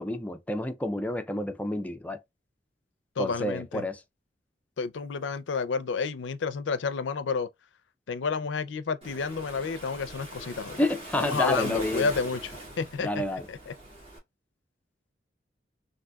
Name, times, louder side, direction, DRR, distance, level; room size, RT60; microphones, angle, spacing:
voice 1, 0.0-2.2 3.2-4.0 10.8-12.1 13.0-13.5, left 1 dB, 10° left, 0.4 m, -29 dB
voice 2, 3.2-3.8 4.8-7.5 8.1-10.8 11.2-13.2 13.5-13.7, left 5 dB, 80° left, 0.5 m, -30 dB
Waves surf, 9.0-14.2, right 1 dB, 30° right, 1.6 m, -41 dB
3.9 x 2.6 x 2.2 m
head